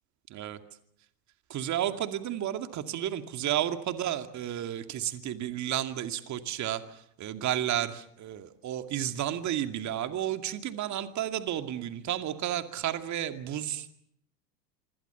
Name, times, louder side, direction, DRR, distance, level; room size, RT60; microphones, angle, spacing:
voice 1, 1.5-13.9, right 11 dB, 35° right, 7 dB, 2.4 m, -32 dB
26.0 x 25.5 x 7.1 m, 0.73 s
hypercardioid pair, 90°, 48 cm